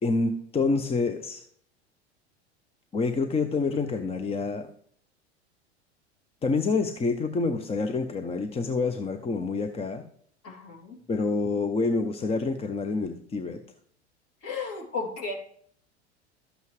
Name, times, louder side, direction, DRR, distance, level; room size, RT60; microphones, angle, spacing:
voice 1, 0.0-1.4 2.9-4.7 6.4-10.0 11.1-13.6, left 3 dB, 20° left, 8 dB, 0.7 m, -27 dB
voice 2, 10.4-11.0 14.4-15.3, left 4 dB, 45° left, 0 dB, 2.9 m, -34 dB
12.5 x 8.0 x 3.2 m, 0.63 s
hypercardioid pair, 90°, 33 cm